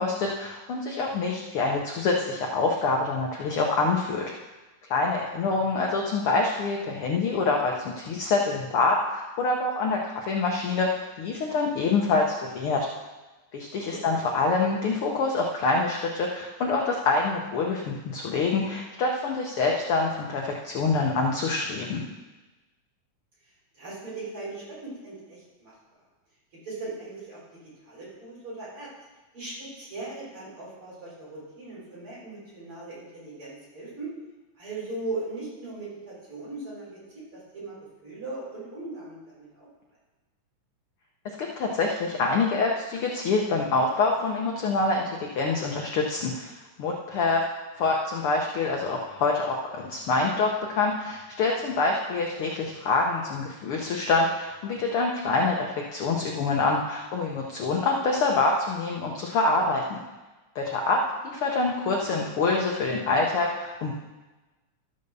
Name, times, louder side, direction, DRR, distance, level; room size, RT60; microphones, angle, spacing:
voice 1, 0.0-4.3 4.9-12.9 13.5-22.0 41.2-46.5 46.8-47.4 47.8-60.0 60.5-63.9, left 3 dB, 70° left, 0 dB, 1.4 m, -26 dB
voice 2, 23.7-25.8 26.6-27.4 27.8-28.9 29.3-34.1 34.6-39.7 61.3-61.4, right 2 dB, 45° right, -7 dB, 5.1 m, -39 dB
12.5 x 5.5 x 6.6 m, 1.2 s
omnidirectional pair, 3.4 m